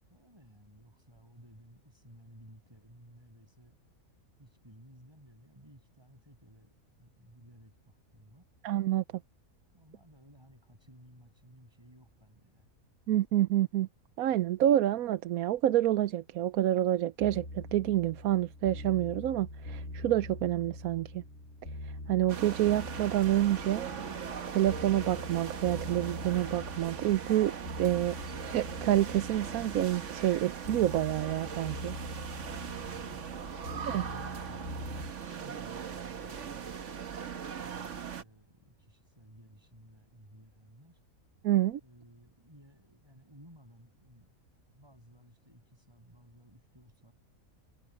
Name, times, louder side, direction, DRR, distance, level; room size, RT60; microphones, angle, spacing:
voice 1, 0.1-3.8 4.4-8.5 9.7-12.7 37.6-41.0 41.8-44.3 44.7-47.1, equal, 15° right, 8.1 m, -57 dB
voice 2, 8.6-9.0 13.1-13.9 14.2-21.2 21.8-23.9 24.5-28.2 28.4-32.0 33.9-34.0 41.4-41.8, right 13 dB, 90° right, 1.1 m, -28 dB
sound 1, 17.2-35.1, left 1 dB, 60° left, 3.4 m, -44 dB
sound 2, 22.3-38.2, right 7 dB, 60° right, 1.5 m, -40 dB
omnidirectional pair, 1.5 m